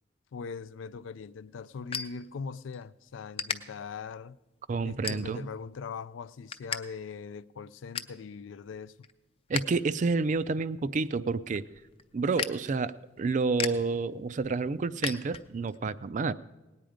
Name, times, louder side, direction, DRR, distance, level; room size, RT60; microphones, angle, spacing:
voice 1, 0.3-4.4 4.8-8.9, left 5 dB, 85° left, 0.4 m, -41 dB
sound 1, 0.8-2.8 3.3-3.6 4.1-4.4 5.0-5.6 6.0-6.8 7.1-7.2 7.6-8.2 8.7-9.8 10.1-15.8, left 6 dB, 30° left, 0.5 m, -38 dB
voice 2, 4.7-5.5 9.5-11.6 12.1-16.3, right 4 dB, 40° right, 0.4 m, -29 dB
18.5 x 9.1 x 5.0 m
head